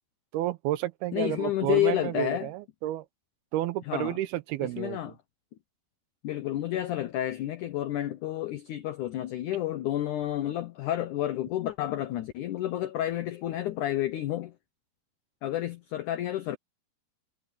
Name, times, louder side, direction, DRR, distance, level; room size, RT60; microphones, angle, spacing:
voice 1, 0.3-3.1 3.5-5.1, right 14 dB, 75° right, 2.5 m, -31 dB
voice 2, 1.1-2.5 3.9-4.2 4.6-5.1 6.2-14.5 15.4-16.6, left 13 dB, 90° left, 1.7 m, -30 dB
omnidirectional pair, 4.8 m